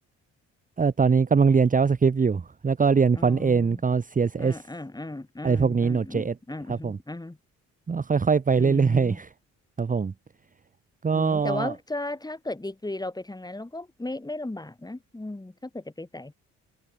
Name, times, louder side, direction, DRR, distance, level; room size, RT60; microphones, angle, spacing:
voice 1, 0.8-4.6 5.4-6.3 6.7-7.0 7.9-9.3 9.8-10.1 11.0-11.7, right 5 dB, 25° right, 1.1 m, -22 dB
voice 2, 3.1-3.8 4.4-7.4 8.5-9.2 11.1-16.3, left 2 dB, 15° left, 6.0 m, -36 dB
cardioid pair, 80°, 30 cm